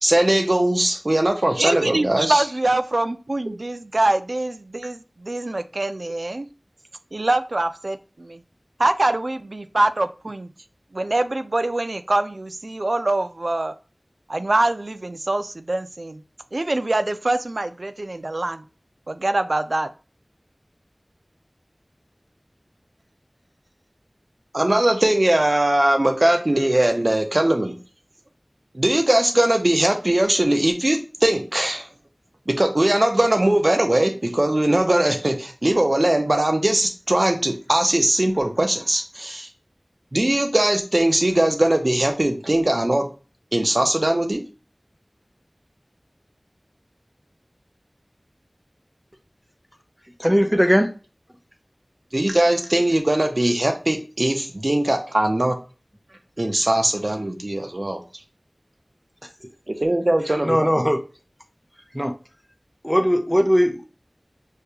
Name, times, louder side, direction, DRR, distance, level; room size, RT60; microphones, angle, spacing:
voice 1, 0.0-2.4 24.5-27.7 28.7-31.9 32.5-39.5 40.1-43.1 43.5-44.4 52.1-55.5 56.4-58.0 59.8-60.7, right 1 dB, 55° right, 4 dB, 0.7 m, -20 dB
voice 2, 1.6-6.5 7.1-8.4 8.8-10.5 10.9-13.7 14.3-16.2 16.5-18.6 19.1-19.9, right 2 dB, 80° right, 11 dB, 0.3 m, -24 dB
voice 3, 50.2-50.9 60.4-61.0 61.9-62.1 62.8-63.9, equal, 5° right, 6 dB, 0.6 m, -19 dB
6.5 x 2.3 x 2.8 m, 0.35 s
wide cardioid pair, 40°, 0 cm